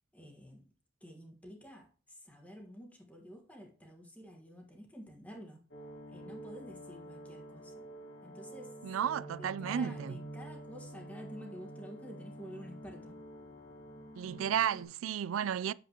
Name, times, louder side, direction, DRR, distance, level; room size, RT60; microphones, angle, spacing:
voice 1, 0.1-0.6 1.0-5.6 6.1-7.9 8.2-8.8 9.4-13.2, equal, 5° left, 1.4 m, -50 dB
sound 1, 5.7-14.8, right 1 dB, 60° left, 1.6 m, -48 dB
voice 2, 8.8-10.2 14.1-15.7, right 9 dB, 85° right, 0.3 m, -33 dB
8.2 x 7.3 x 2.9 m
head